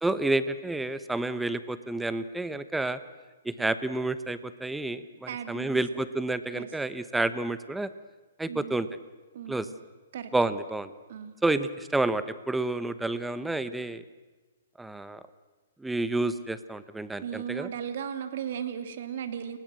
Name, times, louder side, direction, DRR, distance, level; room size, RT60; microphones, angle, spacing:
voice 1, 0.0-3.0 3.4-7.9 8.4-8.9 9.5-9.7 10.3-10.9 11.4-14.0 14.8-15.2 15.8-17.7, right 2 dB, 5° right, 13 dB, 1.1 m, -29 dB
voice 2, 5.3-6.0 6.5-6.7 8.5-8.8 9.3-9.7 10.1-10.3 11.1-11.4 17.2-19.6, right 8 dB, 55° right, 9 dB, 2.9 m, -36 dB
29.5 x 20.5 x 7.8 m, 1.3 s
hypercardioid pair, 150°, 0 cm